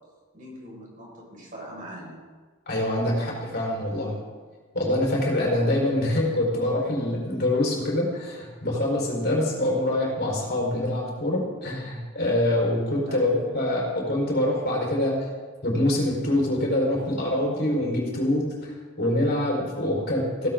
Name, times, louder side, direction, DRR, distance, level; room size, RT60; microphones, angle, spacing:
voice 1, 0.3-2.2 13.0-13.5, equal, 40° right, -3 dB, 5.6 m, -42 dB
voice 2, 2.7-4.1 4.7-15.3 15.6-18.7 19.0-20.5, left 1 dB, 50° left, -2 dB, 4.8 m, -25 dB
16.5 x 16.0 x 3.9 m, 1.5 s
head